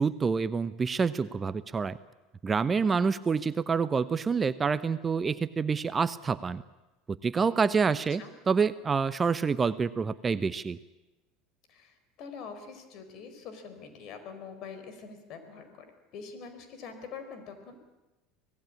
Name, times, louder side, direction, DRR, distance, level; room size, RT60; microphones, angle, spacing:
voice 1, 0.0-2.0 2.4-6.6 7.1-10.8, right 5 dB, 25° right, 15 dB, 0.8 m, -27 dB
voice 2, 2.8-3.2 8.2-8.3 11.7-15.9 16.1-17.8, left 5 dB, 50° left, 8 dB, 4.6 m, -44 dB
25.0 x 18.0 x 8.6 m, 1.1 s
figure-of-eight pair, 75°, 0 cm